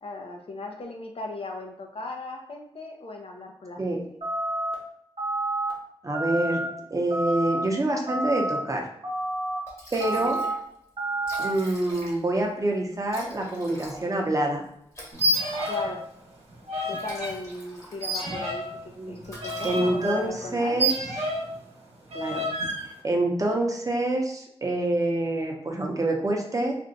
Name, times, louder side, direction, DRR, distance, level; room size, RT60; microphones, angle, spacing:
voice 1, 0.0-4.0 10.1-10.3 15.7-16.0 16.8-18.6 19.1-20.9, left 3 dB, 65° left, 2 dB, 0.5 m, -37 dB
sound 1, 4.2-4.7 5.2-5.7 6.1-6.7 7.1-7.6 8.1-8.6 9.0-9.6 10.0-10.5 11.0-11.5, right 1 dB, 55° right, 0.9 m, -29 dB
voice 2, 6.0-6.6 6.9-8.8 9.9-10.4 11.4-14.6 19.0-19.2 19.6-20.9 22.1-22.4 23.0-26.7, right 1 dB, 30° right, 1 dB, 0.6 m, -26 dB
Liquid, 9.3-9.4 9.7-10.6 10.9-11.0 11.1-12.4 13.1-16.1 16.8-18.3 18.6-18.9 19.2-20.3, equal, 30° left, 1.0 m, -44 dB
sound 2, 15.1-16.0 16.3-17.3 18.0-21.6 22.1-22.8, right 1 dB, 80° right, 0.8 m, -29 dB
2.5 x 2.2 x 3.9 m, 0.75 s
wide cardioid pair, 80°, 11 cm